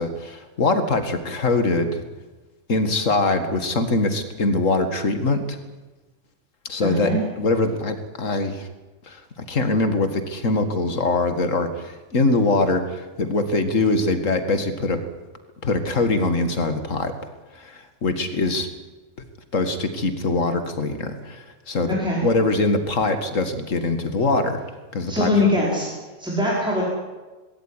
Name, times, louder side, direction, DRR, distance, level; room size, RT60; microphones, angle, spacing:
voice 1, 0.0-2.0 2.7-5.6 6.7-8.7 9.1-15.0 15.6-17.1 17.6-18.7 19.5-22.0 22.2-24.6 24.9-25.5, left 2 dB, 75° left, 8 dB, 2.3 m, -23 dB
voice 2, 6.8-7.2 21.9-22.2 25.1-25.9 26.2-26.8, left 1 dB, 5° right, -5 dB, 5.0 m, -22 dB
19.5 x 17.5 x 9.9 m, 1.2 s
omnidirectional pair, 1.3 m